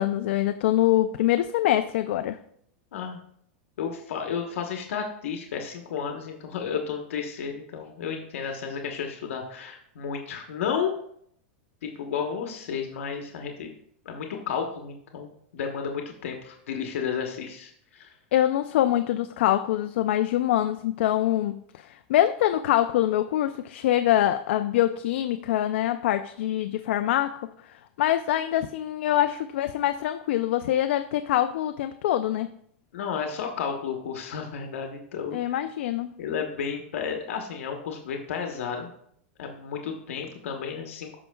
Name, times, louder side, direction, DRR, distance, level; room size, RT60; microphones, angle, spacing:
voice 1, 0.0-2.4 18.3-32.5 35.3-36.1, left 12 dB, 65° left, 9 dB, 0.4 m, -24 dB
voice 2, 3.8-10.9 11.8-13.7 14.0-18.1 32.9-35.4 36.2-38.9 39.4-41.2, left 7 dB, 85° left, 3 dB, 1.0 m, -32 dB
13.5 x 5.6 x 2.3 m, 0.67 s
supercardioid pair, 175°, 7 cm